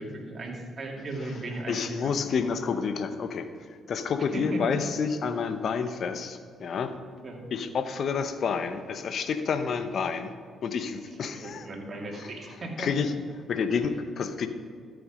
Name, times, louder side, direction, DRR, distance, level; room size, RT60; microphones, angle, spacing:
voice 1, 0.0-2.2 4.3-4.8 7.2-7.4 11.2-12.9, right 1 dB, 45° right, 0 dB, 2.6 m, -36 dB
voice 2, 1.7-7.0 7.5-10.3 10.6-11.7 12.1-12.3 12.8-13.2 13.5-14.5, left 5 dB, 60° left, 10 dB, 0.9 m, -29 dB
13.5 x 6.9 x 5.1 m, 2.2 s
hypercardioid pair, 50°, 0 cm